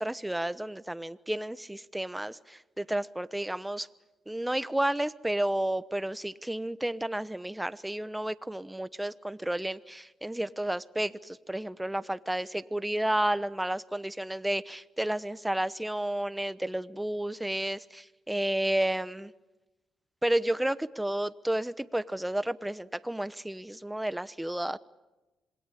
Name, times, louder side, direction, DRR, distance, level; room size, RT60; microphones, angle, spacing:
voice 1, 0.0-3.9 4.3-19.3 20.2-24.8, right 1 dB, 5° right, 1.0 m, -31 dB
27.0 x 21.0 x 10.0 m
cardioid pair, 80°, 0 cm